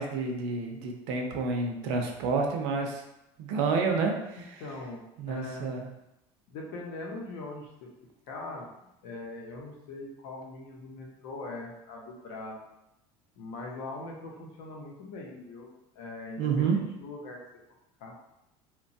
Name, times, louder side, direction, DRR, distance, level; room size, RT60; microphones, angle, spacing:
voice 1, 0.0-3.0 3.4-4.1 5.2-5.9 16.4-16.8, right 4 dB, 65° right, 2 dB, 0.5 m, -29 dB
voice 2, 4.6-5.7 6.5-7.9 8.3-8.7 9.0-12.6 13.4-17.4 18.0-18.1, left 2 dB, 65° left, -1 dB, 0.7 m, -41 dB
2.9 x 2.2 x 2.6 m, 0.88 s
cardioid pair, 175°, 13 cm